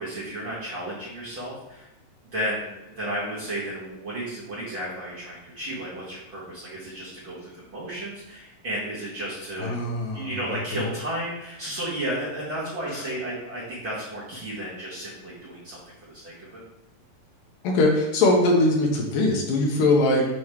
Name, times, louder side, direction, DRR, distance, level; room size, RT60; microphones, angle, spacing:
voice 1, 0.0-1.9 2.3-9.7 10.1-16.6, right 1 dB, 45° right, -9 dB, 1.8 m, -33 dB
voice 2, 9.6-10.9 12.9-13.0 17.6-20.3, left 2 dB, 75° left, -1 dB, 2.5 m, -22 dB
7.2 x 3.1 x 4.7 m, 0.94 s
omnidirectional pair, 4.1 m